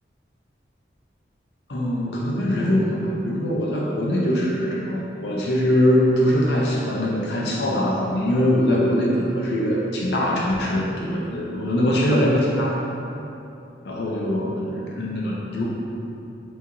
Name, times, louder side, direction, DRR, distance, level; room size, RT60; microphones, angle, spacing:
voice 1, 1.7-12.9 13.8-15.7, equal, 70° left, -4 dB, 0.5 m, -22 dB
5.0 x 2.8 x 2.6 m, 2.9 s
head